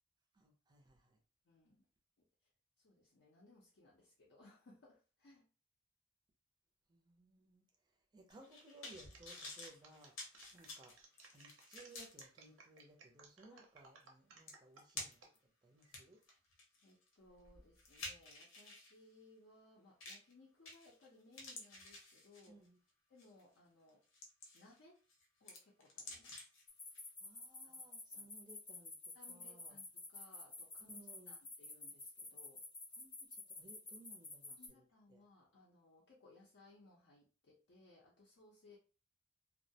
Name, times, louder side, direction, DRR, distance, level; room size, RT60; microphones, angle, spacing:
voice 1, 0.3-1.2 6.9-7.6 8.1-11.0 11.3-15.2 15.6-16.2 22.5-22.8 27.2-29.8 30.9-31.4 33.0-34.8 35.1-35.2, right 2 dB, 20° right, 0.4 m, -61 dB
voice 2, 1.4-1.9 2.4-2.5 2.8-5.4 13.5-13.7 16.8-22.6 23.1-24.0 24.5-25.0 25.4-26.5 27.6-28.3 29.1-32.6 34.5-38.8, left 2 dB, 60° left, 0.5 m, -65 dB
sound 1, 8.3-12.2 12.8-12.9 14.1-14.2 14.5-15.4 15.8-18.9 20.0-20.3 20.7-21.1 21.3-22.7 23.2-23.4 23.9-24.8 25.1-26.6 26.9-27.0, left 2 dB, 85° left, 0.8 m, -51 dB
sound 2, 9.1-15.3 15.8-16.2, right 4 dB, 75° right, 0.6 m, -61 dB
sound 3, 26.7-34.7, left 3 dB, 20° left, 0.8 m, -50 dB
2.2 x 2.1 x 2.7 m
head